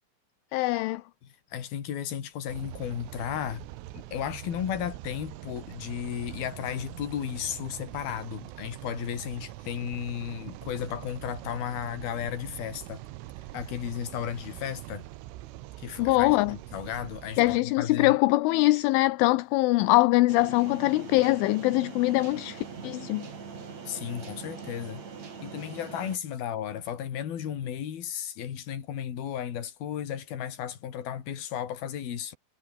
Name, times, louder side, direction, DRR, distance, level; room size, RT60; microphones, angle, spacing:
voice 1, 0.5-1.0 16.0-16.5 17.4-23.3, left 20 dB, 80° left, 3.2 m, -23 dB
voice 2, 1.2-3.7 3.9-13.0 13.5-15.1 15.8-18.2 23.9-25.0 25.4-32.3, left 9 dB, 55° left, 4.2 m, -34 dB
sound 1, 2.5-17.6, right 16 dB, 85° right, 3.8 m, -43 dB
sound 2, 20.3-26.2, right 5 dB, 40° right, 4.4 m, -42 dB
omnidirectional pair, 5.7 m